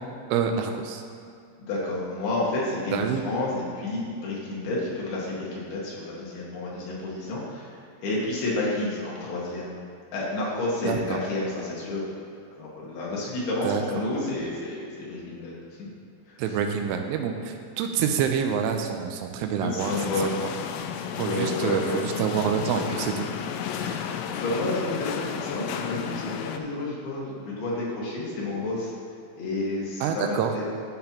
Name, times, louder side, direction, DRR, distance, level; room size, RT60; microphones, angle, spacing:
voice 1, 0.3-1.0 2.9-3.2 10.8-11.2 13.6-13.8 16.4-20.0 21.2-23.3 30.0-30.5, right 7 dB, 80° right, 5 dB, 3.0 m, -27 dB
voice 2, 1.6-9.7 10.1-12.0 12.6-15.5 15.8-15.9 16.3-16.4 19.6-20.3 21.2-22.0 23.7-28.9 29.3-30.6, left 2 dB, 60° left, -5 dB, 3.1 m, -30 dB
sound 1, 19.8-26.6, left 8 dB, 85° left, 3.1 m, -33 dB
13.0 x 7.7 x 2.9 m, 2.5 s
omnidirectional pair, 5.7 m